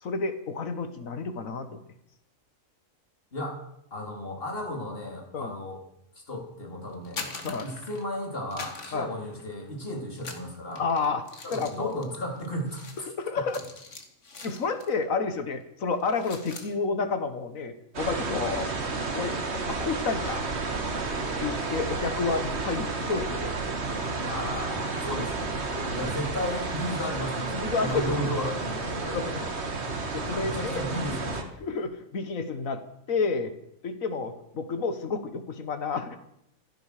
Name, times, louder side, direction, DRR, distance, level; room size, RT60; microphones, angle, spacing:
voice 1, 0.0-1.8 5.3-5.5 7.4-7.7 8.9-9.1 10.8-11.2 11.5-11.9 13.1-13.6 14.4-18.7 19.1-20.5 21.4-23.5 25.7-26.1 27.5-28.3 29.1-29.5 30.1-31.1 31.6-32.8 33.1-33.5 33.8-36.2, left 4 dB, 80° left, 9 dB, 1.8 m, -30 dB
voice 2, 3.9-5.8 6.3-10.8 11.4-13.1 22.4-22.6 24.2-25.5 25.9-29.2 30.2-31.5, left 1 dB, 45° left, 0 dB, 3.5 m, -34 dB
sound 1, 6.9-8.2 8.5-9.8 10.1-15.1 15.4-15.6 15.9-16.7, left 3 dB, 60° left, 2.1 m, -43 dB
sound 2, 17.9-31.4, right 3 dB, 55° right, 1.9 m, -31 dB
15.0 x 12.0 x 6.7 m, 0.79 s
omnidirectional pair, 1.4 m